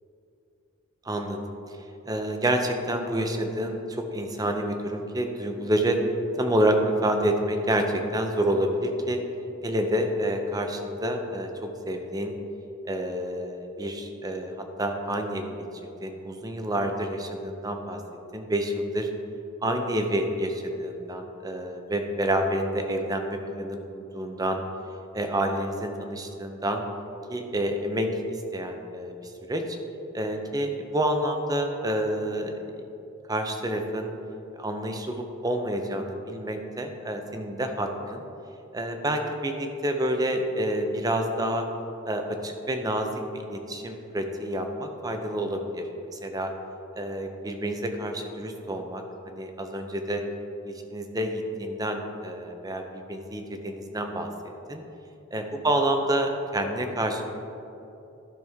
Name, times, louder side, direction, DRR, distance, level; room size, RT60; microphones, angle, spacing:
voice 1, 1.0-1.4 2.0-6.0 6.4-9.2 9.6-12.3 12.8-15.5 15.8-18.0 18.3-19.1 19.6-24.6 25.1-26.8 27.3-29.8 30.1-32.6 33.3-34.1 34.6-38.2 38.7-41.7 42.1-46.5 47.0-50.2 50.6-54.8 55.3-57.2, right 1 dB, 20° right, 5 dB, 0.6 m, -28 dB
12.5 x 6.1 x 3.5 m, 2.9 s
head